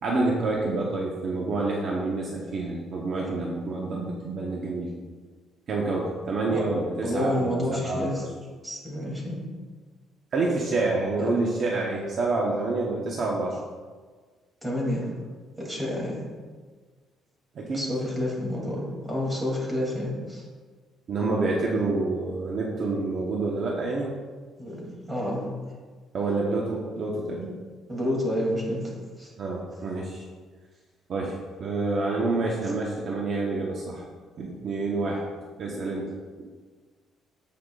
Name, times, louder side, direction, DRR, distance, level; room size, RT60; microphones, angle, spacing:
voice 1, 0.0-4.9 5.7-8.2 10.3-13.6 17.5-17.9 21.1-24.1 26.1-27.6 29.4-30.3 31.1-34.0 34.4-35.2 35.6-36.1 36.4-36.5, right 3 dB, 45° right, -2 dB, 1.1 m, -28 dB
voice 2, 7.0-8.2 8.6-9.4 11.2-11.3 14.6-15.1 15.6-16.2 17.7-20.4 24.6-25.5 27.9-28.9 29.2-29.3, left 1 dB, 10° right, -3 dB, 2.7 m, -29 dB
15.5 x 5.8 x 2.5 m, 1.5 s
cardioid pair, 140°, 0 cm